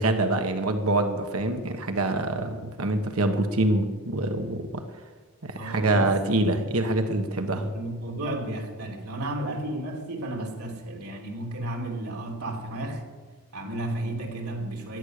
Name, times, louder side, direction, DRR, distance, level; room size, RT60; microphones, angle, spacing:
voice 1, 0.0-4.8 5.4-7.7, right 2 dB, 70° right, 6 dB, 1.4 m, -25 dB
voice 2, 5.6-6.2 7.5-13.0 13.5-15.0, right 1 dB, 85° right, 1 dB, 3.3 m, -33 dB
16.0 x 11.5 x 6.7 m, 1.4 s
head